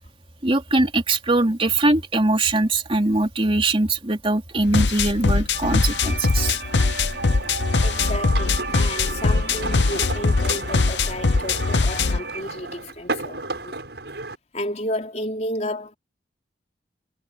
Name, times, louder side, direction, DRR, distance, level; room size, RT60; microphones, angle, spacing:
voice 1, 0.4-6.6 7.0-7.1, right 2 dB, 30° right, 3.0 m, -21 dB
sound 1, 4.6-12.2, left 4 dB, 85° left, 0.8 m, -21 dB
sound 2, 5.5-12.4, right 4 dB, 90° right, 5.9 m, -35 dB
sound 3, 7.4-14.4, right 3 dB, 70° right, 7.4 m, -34 dB
voice 2, 7.8-13.8 14.5-15.9, left 1 dB, 40° left, 3.7 m, -32 dB
head